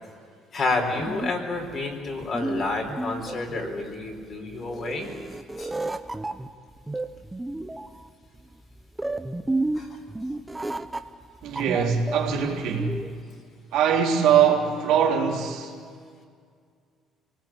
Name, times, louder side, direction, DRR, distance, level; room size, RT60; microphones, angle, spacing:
voice 1, 0.5-5.1 5.6-5.7 9.7-9.9, left 3 dB, 35° left, 4.1 m, -29 dB
sound 1, 0.7-13.2, right 2 dB, 10° right, 0.8 m, -32 dB
voice 2, 11.4-13.1 13.7-15.7, right 7 dB, 70° right, 3.6 m, -22 dB
27.5 x 19.5 x 8.8 m
cardioid pair, 175°, 0 cm